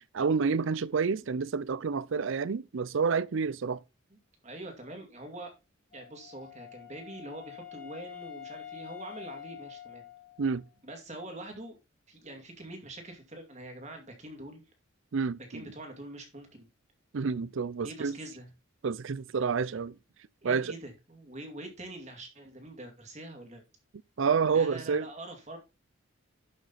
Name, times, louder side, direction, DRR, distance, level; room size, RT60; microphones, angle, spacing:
voice 1, 0.0-3.8 10.4-10.6 15.1-15.6 17.1-18.2 18.8-19.9 20.4-20.7 24.2-25.1, right 5 dB, 65° right, 0.5 m, -29 dB
voice 2, 4.4-5.5 5.9-10.0 10.8-11.8 12.1-14.6 15.5-16.7 17.8-18.5 20.4-23.6 24.5-25.6, right 1 dB, 35° right, 2.4 m, -44 dB
Wind instrument woodwind instrument, 5.9-10.7, left 11 dB, 40° left, 4.3 m, -46 dB
12.0 x 6.0 x 4.1 m
head